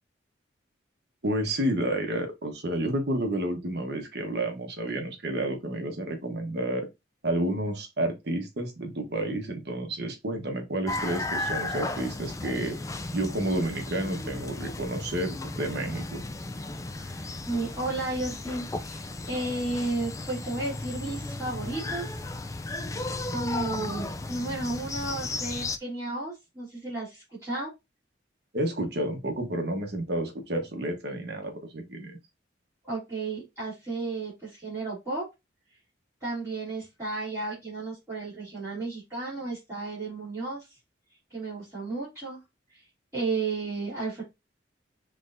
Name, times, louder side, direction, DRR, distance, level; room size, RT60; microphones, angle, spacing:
voice 1, 1.2-6.9 7.2-12.8 13.1-16.2 28.5-32.2, right 1 dB, 60° right, 1.2 m, -30 dB
sound 1, 10.9-25.8, left 2 dB, 15° left, 0.3 m, -35 dB
voice 2, 17.0-22.0 22.5-22.6 23.3-27.7 32.8-35.2 36.2-40.7 41.3-42.4 43.1-44.2, right 3 dB, 15° right, 2.7 m, -33 dB
5.9 x 3.3 x 2.6 m
head